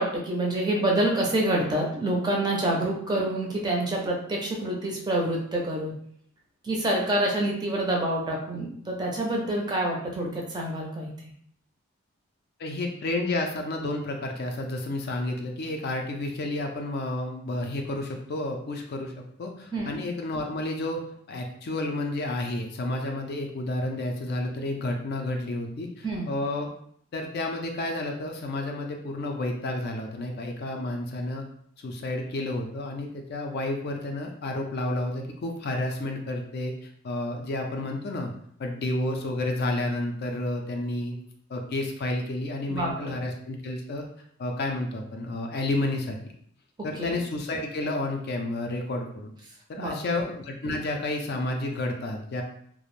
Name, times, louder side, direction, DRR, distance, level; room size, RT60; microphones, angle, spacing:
voice 1, 0.0-5.9 6.6-11.1 19.7-20.0 26.0-26.3 42.7-43.2 47.0-47.2 49.8-50.0, right 1 dB, 20° right, -1 dB, 0.4 m, -27 dB
voice 2, 12.6-19.1 19.4-21.0 21.3-26.7 27.1-31.4 31.8-38.3 38.6-41.2 41.5-44.1 44.4-46.2 46.8-49.3 49.7-52.4, left 2 dB, 50° left, 3 dB, 0.3 m, -31 dB
2.4 x 2.0 x 3.0 m, 0.66 s
head